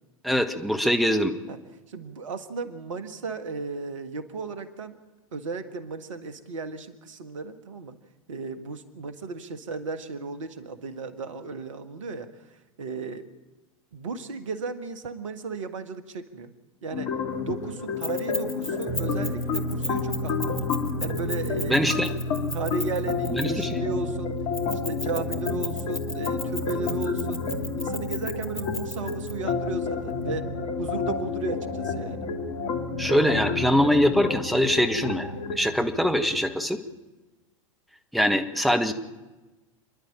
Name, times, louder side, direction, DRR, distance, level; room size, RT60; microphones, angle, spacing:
voice 1, 0.2-1.3 21.7-22.1 23.3-23.7 33.0-35.3 35.5-36.8 38.1-38.9, equal, ahead, 6 dB, 1.4 m, -23 dB
voice 2, 1.9-5.0 5.3-7.9 8.3-12.3 12.8-13.3 13.9-16.5 16.8-17.1 17.4-20.6 21.0-21.9 22.5-24.3 24.8-27.4 27.8-30.5 30.8-32.3, right 4 dB, 65° right, 10 dB, 1.6 m, -35 dB
sound 1, 16.9-35.6, left 5 dB, 45° left, 2.6 m, -31 dB
Keys jangling, 18.0-23.7 24.5-29.3, left 1 dB, 80° left, 2.5 m, -35 dB
sound 2, 18.9-36.5, right 1 dB, 20° right, 1.5 m, -36 dB
29.0 x 11.0 x 8.9 m, 1.2 s
figure-of-eight pair, 90°, 18 cm